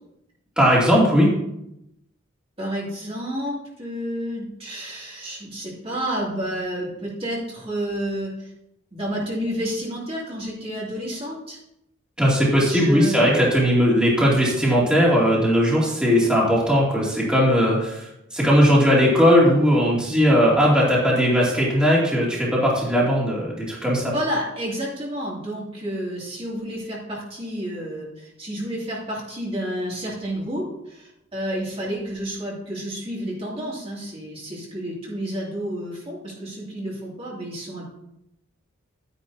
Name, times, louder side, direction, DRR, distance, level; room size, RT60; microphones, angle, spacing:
voice 1, 0.6-1.3 12.2-18.1 18.3-24.1, equal, 5° right, -6 dB, 2.6 m, -18 dB
voice 2, 2.6-8.5 8.9-11.6 12.7-13.5 24.1-37.9, equal, 30° right, -5 dB, 2.6 m, -30 dB
11.5 x 9.7 x 2.8 m, 0.82 s
head